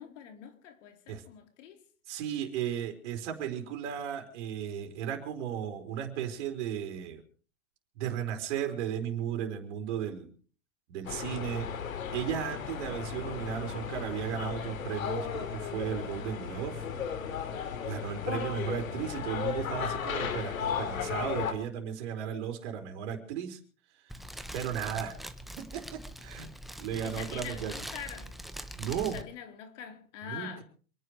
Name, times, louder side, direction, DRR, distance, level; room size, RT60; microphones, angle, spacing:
voice 1, 0.0-1.8 26.2-26.5 27.0-28.3 28.9-30.6, left 8 dB, 65° left, 4.0 m, -45 dB
voice 2, 2.1-7.2 8.0-10.3 10.9-11.7 12.1-16.8 17.8-23.6 24.5-26.5 26.8-27.7 28.7-29.2 30.2-30.6, right 9 dB, 55° right, 4.4 m, -35 dB
sound 1, 11.0-21.5, left 7 dB, 80° left, 3.2 m, -35 dB
Fire, 24.1-29.2, equal, ahead, 1.1 m, -43 dB
27.5 x 10.0 x 4.8 m
hypercardioid pair, 130°, 41 cm